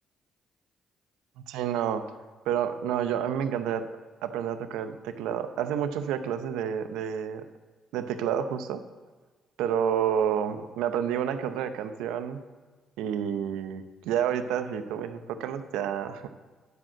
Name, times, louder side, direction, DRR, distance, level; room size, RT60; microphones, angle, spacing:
voice 1, 1.5-2.0 2.5-3.8 4.2-7.4 7.9-8.8 9.6-12.4 13.0-16.3, right 9 dB, 85° right, 10 dB, 0.6 m, -29 dB
11.5 x 5.1 x 7.6 m, 1.3 s
supercardioid pair, 65°, 0 cm